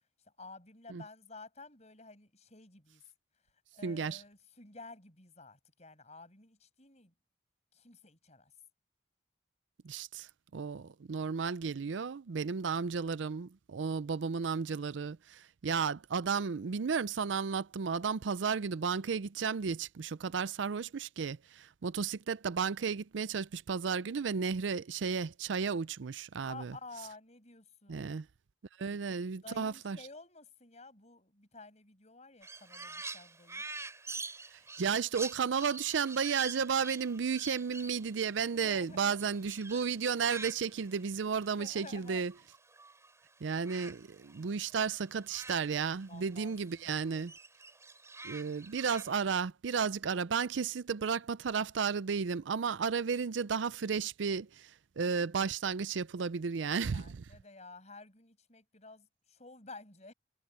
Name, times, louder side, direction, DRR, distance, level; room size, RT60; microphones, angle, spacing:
voice 1, 0.2-3.0 3.7-7.1 7.7-8.5 26.5-28.1 28.8-33.6 34.6-35.0 38.5-39.2 41.3-42.2 46.1-46.6 46.9-47.3 56.9-60.1, left 3 dB, 40° left, 7.6 m, -52 dB
voice 2, 3.8-4.2 9.8-10.3 10.5-26.8 27.9-28.3 28.8-30.0 34.5-42.3 43.4-47.3 48.2-57.2, right 6 dB, 85° right, 0.5 m, -33 dB
Crow, 32.4-43.1 43.4-46.4 46.7-49.4, right 3 dB, 15° right, 4.5 m, -47 dB
head